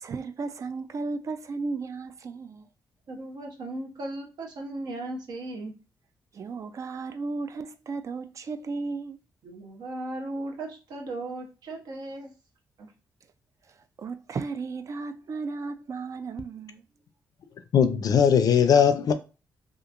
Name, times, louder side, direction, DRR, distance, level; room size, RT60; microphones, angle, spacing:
voice 1, 0.0-2.7 6.3-9.2 14.0-16.8, right 4 dB, 50° right, 0.3 m, -34 dB
voice 2, 3.1-5.7 9.4-12.3 12.8-12.9, right 2 dB, 75° right, 0.8 m, -36 dB
voice 3, 17.7-19.1, left 7 dB, 60° left, 0.4 m, -19 dB
2.8 x 2.4 x 2.4 m
cardioid pair, 85°, 7 cm